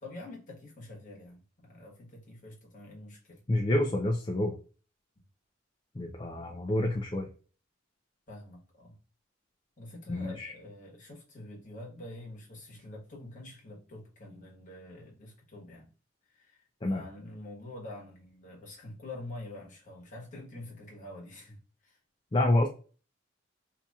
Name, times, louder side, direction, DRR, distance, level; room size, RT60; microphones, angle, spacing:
voice 1, 0.0-3.4 8.3-9.0 9.8-15.9 16.3-22.0, left 1 dB, 40° left, 1.3 m, -46 dB
voice 2, 3.5-4.5 5.9-7.3 10.1-10.5 16.8-17.0 22.3-22.7, left 1 dB, 25° left, 0.5 m, -28 dB
4.0 x 2.9 x 2.4 m
head